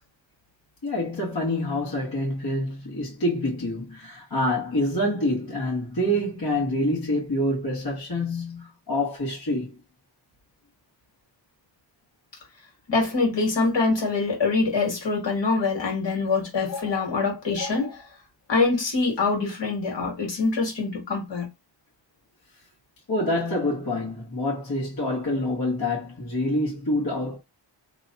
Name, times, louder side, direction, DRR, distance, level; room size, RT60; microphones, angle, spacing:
voice 1, 0.8-9.8 23.1-27.4, left 1 dB, 50° left, 1.5 m, -26 dB
voice 2, 12.9-18.0 18.5-21.5, left 3 dB, 70° left, 1.8 m, -24 dB
3.0 x 2.2 x 4.0 m
wide cardioid pair, 120°, 45 cm